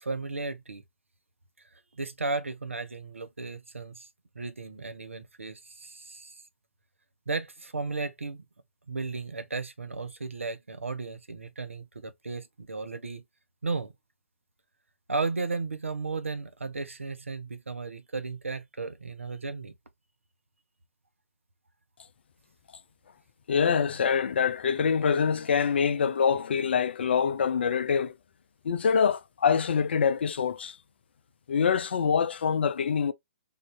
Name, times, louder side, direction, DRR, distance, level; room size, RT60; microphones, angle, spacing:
voice 1, 0.0-0.8 1.9-4.1 4.4-6.4 7.3-8.4 8.9-13.2 13.6-13.9 15.1-19.7, right 3 dB, 80° right, 0.7 m, -34 dB
voice 2, 23.5-28.1 28.6-30.8 31.5-33.1, left 6 dB, 55° left, 0.4 m, -25 dB
3.6 x 2.5 x 3.3 m
figure-of-eight pair, 125°, 7 cm